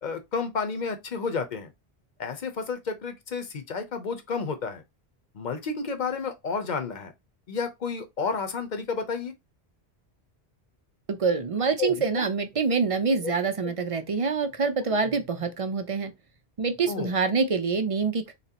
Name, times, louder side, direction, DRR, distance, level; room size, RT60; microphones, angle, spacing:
voice 1, 0.0-1.7 2.2-4.8 5.3-7.1 7.5-9.3 11.8-12.2 13.2-13.3 13.6-13.7 14.9-15.0 16.9-17.1, left 5 dB, 50° left, 0.8 m, -31 dB
voice 2, 11.1-16.1 16.6-18.3, right 4 dB, 50° right, 0.4 m, -26 dB
4.1 x 3.0 x 2.8 m
omnidirectional pair, 1.1 m